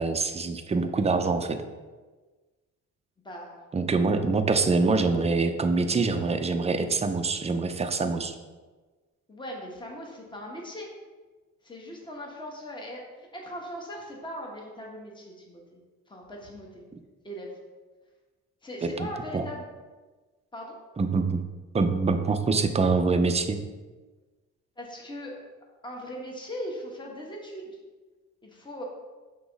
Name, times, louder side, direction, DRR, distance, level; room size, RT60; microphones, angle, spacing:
voice 1, 0.0-1.6 3.7-8.3 18.8-19.1 19.3-19.4 21.0-21.4 21.7-23.6, right 4 dB, 20° right, 7 dB, 0.5 m, -25 dB
voice 2, 3.2-3.6 9.3-10.9 11.6-15.8 16.1-16.8 17.2-17.6 18.6-19.6 20.5-20.8 24.8-25.4 25.8-27.7 28.4-28.8, equal, 15° left, -1 dB, 1.3 m, -39 dB
6.0 x 3.0 x 5.2 m, 1.3 s
cardioid pair, 90°, 30 cm